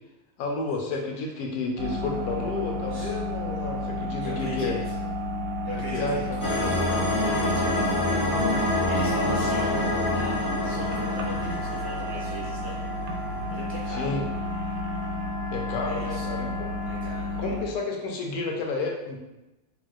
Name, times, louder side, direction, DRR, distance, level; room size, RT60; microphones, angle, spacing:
voice 1, 0.4-4.8 5.9-6.8 13.9-14.2 15.5-16.7 17.4-19.2, left 3 dB, 85° left, 1 dB, 1.1 m, -31 dB
sound 1, 1.8-17.7, left 1 dB, 90° right, 1.1 m, -31 dB
voice 2, 4.2-4.9 5.6-12.8 13.5-14.1 15.8-16.3 16.8-17.4, right 1 dB, 30° right, -7 dB, 0.5 m, -40 dB
sound 2, 6.4-13.5, left 1 dB, 15° left, 0.7 m, -27 dB
Trumpet, 10.6-17.6, left 2 dB, 60° left, 1.2 m, -43 dB
3.4 x 3.0 x 2.3 m, 0.98 s
omnidirectional pair, 1.5 m